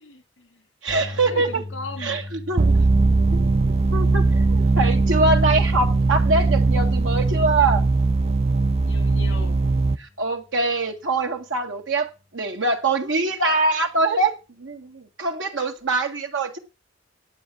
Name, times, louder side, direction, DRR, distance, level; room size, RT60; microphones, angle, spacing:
voice 1, 0.0-0.6 1.0-2.2 2.5-2.9 4.6-4.8 8.8-9.6, left 3 dB, 70° left, 3.0 m, -39 dB
voice 2, 0.8-1.6 2.0-2.7 3.3-3.4 3.9-7.8 10.2-14.3 14.6-16.6, right 3 dB, 80° right, 1.7 m, -23 dB
sound 1, 2.6-10.0, right 3 dB, 35° right, 0.5 m, -20 dB
sound 2, 10.2-13.1 13.5-13.7 15.9-16.0, left 2 dB, 5° right, 3.5 m, -41 dB
9.8 x 8.1 x 6.0 m
head